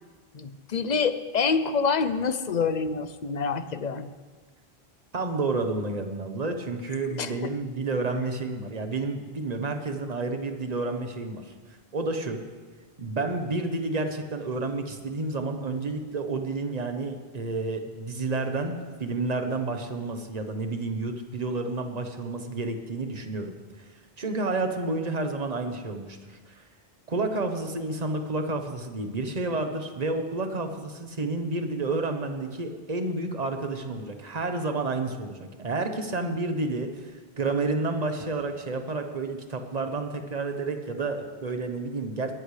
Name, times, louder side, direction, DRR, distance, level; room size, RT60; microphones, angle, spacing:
voice 1, 0.3-4.1 7.1-7.5, left 5 dB, 50° left, 11 dB, 0.7 m, -27 dB
voice 2, 5.1-11.5 11.9-12.4 13.0-23.5 24.2-26.6 27.1-37.1 37.4-42.3, right 3 dB, 40° right, 6 dB, 1.2 m, -30 dB
21.0 x 13.5 x 3.3 m, 1.4 s
omnidirectional pair, 1.0 m